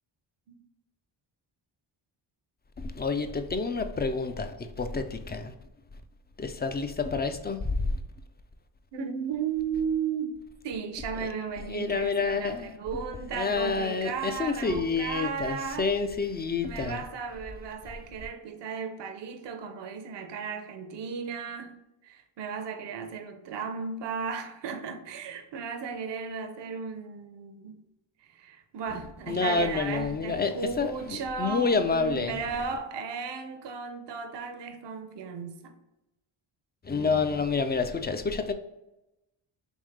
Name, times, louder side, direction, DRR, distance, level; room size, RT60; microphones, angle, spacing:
voice 1, 2.8-5.5 6.4-7.9 11.2-11.3 11.7-12.7 13.3-17.0 29.3-32.4 36.8-38.5, left 4 dB, 20° left, 0.4 m, -28 dB
voice 2, 8.9-10.4 10.6-15.9 16.6-21.8 22.0-27.7 28.2-35.7, right 6 dB, 60° right, 0.7 m, -35 dB
3.6 x 3.1 x 3.2 m
cardioid pair, 55°, 49 cm